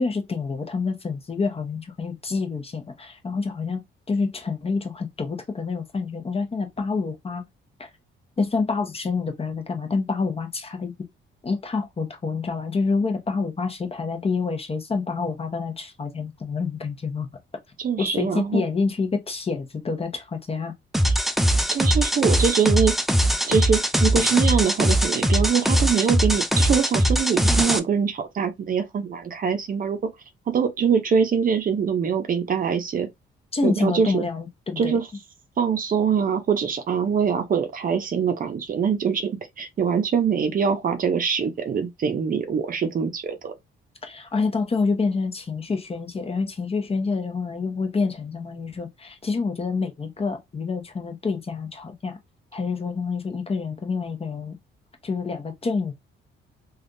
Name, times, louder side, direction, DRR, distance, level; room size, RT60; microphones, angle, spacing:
voice 1, 0.0-3.8 4.1-7.4 7.8-7.9 8.4-10.9 11.4-17.3 18.0-20.7 33.5-35.0 44.0-52.2 52.5-54.6 55.0-55.9, left 4 dB, 30° left, 0.9 m, -27 dB
voice 2, 17.8-18.6 21.7-22.9 23.5-30.0 30.5-33.1 33.6-34.2 34.8-35.1 35.6-39.3 39.6-43.5, right 6 dB, 45° right, 0.7 m, -23 dB
sound 1, 20.9-27.8, equal, ahead, 0.4 m, -21 dB
3.4 x 2.4 x 2.6 m
cardioid pair, 90°, 20 cm